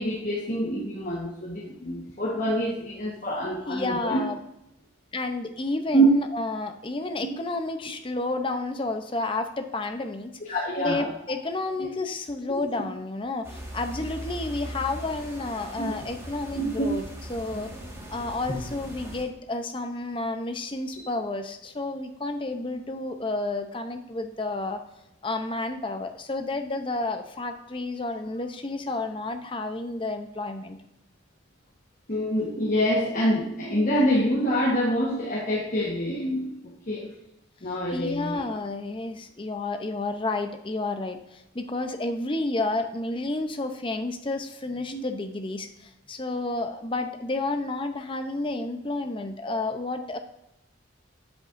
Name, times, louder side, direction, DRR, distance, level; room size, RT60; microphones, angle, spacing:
voice 1, 0.0-4.2 5.9-6.1 10.5-11.1 12.5-12.6 15.8-15.9 16.8-16.9 17.5-17.6 20.9-21.0 32.1-36.6 36.9-37.1 37.6-38.4 44.9-45.0, equal, 40° left, -3 dB, 1.2 m, -26 dB
voice 2, 3.7-4.4 5.1-17.0 17.3-17.7 18.1-24.8 25.2-30.8 37.9-50.2, left 2 dB, 25° left, 6 dB, 0.6 m, -31 dB
sound 1, 13.4-19.2, equal, 15° right, 1.6 m, -39 dB
8.4 x 7.9 x 2.5 m, 0.85 s
head